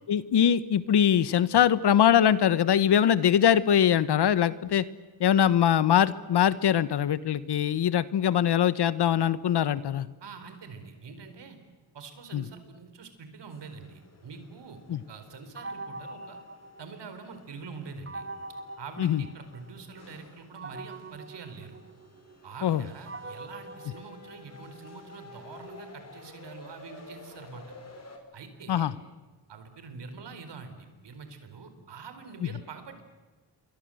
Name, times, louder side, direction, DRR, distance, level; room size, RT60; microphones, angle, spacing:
voice 1, 0.1-4.8 5.2-10.1 12.3-12.4 14.9-15.0 19.0-19.2 22.6-22.8 28.7-28.9, left 9 dB, 65° left, 16 dB, 1.2 m, -22 dB
voice 2, 10.2-11.6 11.9-16.4 16.8-18.2 18.8-21.8 22.4-27.6 28.3-28.9 29.5-33.0, right 5 dB, 70° right, 8 dB, 4.7 m, -45 dB
sound 1, 13.5-28.2, left 3 dB, 35° left, 5.3 m, -52 dB
sound 2, 15.6-17.4 18.1-19.9 20.6-24.8, right 2 dB, 30° right, 1.4 m, -43 dB
28.5 x 24.0 x 7.9 m, 1.3 s
cardioid pair, 90°, 44 cm